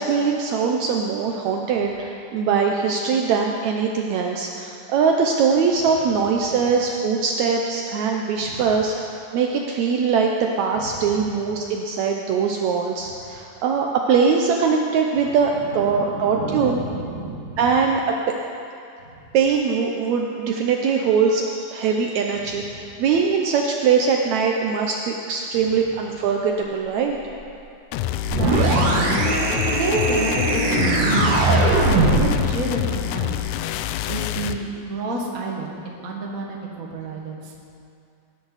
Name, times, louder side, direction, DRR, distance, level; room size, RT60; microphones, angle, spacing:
voice 1, 0.0-10.3 10.6-16.8 17.6-18.0 19.3-27.2, right 5 dB, 75° right, 1 dB, 1.8 m, -22 dB
voice 2, 15.6-17.8 28.4-33.4 34.1-37.5, right 2 dB, 40° right, -1 dB, 1.4 m, -30 dB
sound 1, 27.9-34.6, left 13 dB, 80° left, 1.9 m, -27 dB
sound 2, 28.3-32.4, right 2 dB, 60° right, 2.3 m, -20 dB
19.5 x 10.5 x 4.1 m, 2.5 s
omnidirectional pair, 3.7 m